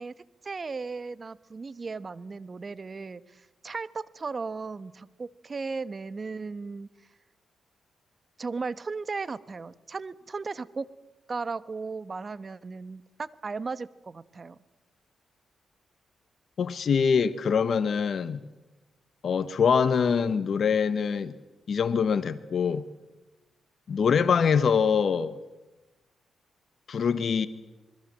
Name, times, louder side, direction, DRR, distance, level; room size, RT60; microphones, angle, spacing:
voice 1, 0.0-6.9 8.4-10.9 11.3-14.6, right 4 dB, 40° right, 1.2 m, -36 dB
voice 2, 16.6-18.4 19.2-21.3 21.7-22.9 23.9-25.4 26.9-27.5, left 6 dB, 60° left, 1.2 m, -24 dB
27.5 x 21.5 x 7.5 m
supercardioid pair, 60°, 0 cm